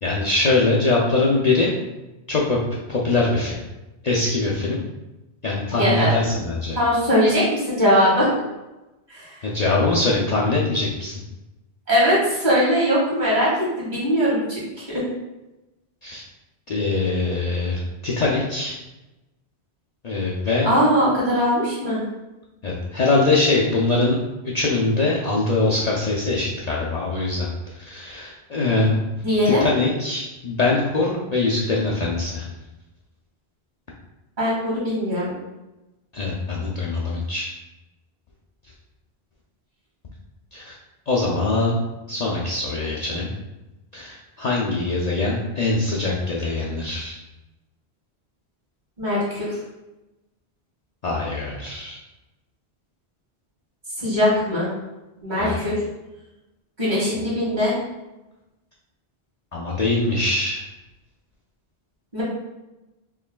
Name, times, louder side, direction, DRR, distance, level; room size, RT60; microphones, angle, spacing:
voice 1, 0.0-1.7 2.3-3.6 4.0-4.8 5.4-6.8 9.4-11.1 16.0-16.2 16.7-18.7 20.0-20.7 22.6-24.2 24.4-29.0 29.4-32.5 36.1-37.5 40.5-40.8 41.1-41.7 42.1-43.3 43.9-47.1 51.0-52.0 55.4-55.6 59.5-60.6, left 3 dB, 50° left, -4 dB, 0.5 m, -22 dB
voice 2, 5.8-6.1 6.8-8.3 9.1-9.4 11.9-13.5 13.8-14.6 14.9-15.0 20.6-22.0 29.2-29.6 34.4-35.4 49.0-49.6 54.0-54.7 55.2-55.7 56.8-57.7 62.1-62.2, equal, 45° right, -7 dB, 1.7 m, -20 dB
4.7 x 3.1 x 2.2 m, 1.0 s
omnidirectional pair, 1.1 m